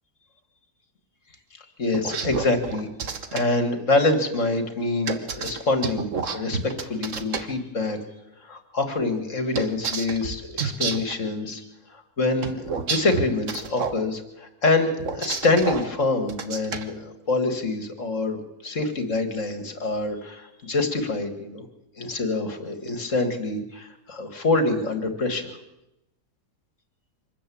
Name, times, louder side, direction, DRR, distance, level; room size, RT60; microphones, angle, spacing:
voice 1, 1.8-8.0 8.4-11.6 11.9-18.4 18.6-21.6 22.0-25.5, left 2 dB, 50° left, 7 dB, 2.4 m, -26 dB
sound 1, 1.9-3.4 5.1-7.4 9.5-11.1 12.4-14.0 15.0-15.8 16.3-16.8, right 5 dB, 55° right, 1.6 m, -29 dB
25.0 x 13.5 x 8.7 m, 0.91 s
omnidirectional pair, 1.7 m